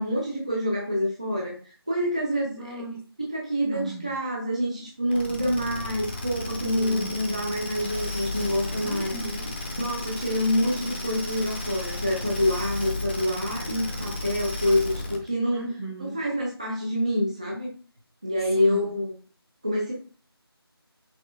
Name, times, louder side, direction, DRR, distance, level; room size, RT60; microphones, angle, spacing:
voice 1, 0.0-2.6 3.2-9.1 9.8-15.6 16.1-17.7 18.2-19.1 19.6-19.9, left 1 dB, 15° right, 0.4 m, -27 dB
voice 2, 2.4-3.0 3.7-4.2 6.7-7.3 8.8-9.6 13.8-14.0 15.5-16.3 18.5-18.9, right 1 dB, 75° right, 2.2 m, -36 dB
sound 1, 5.1-15.3, left 2 dB, 25° left, 0.6 m, -33 dB
5.7 x 3.2 x 2.6 m
figure-of-eight pair, 170°, 13 cm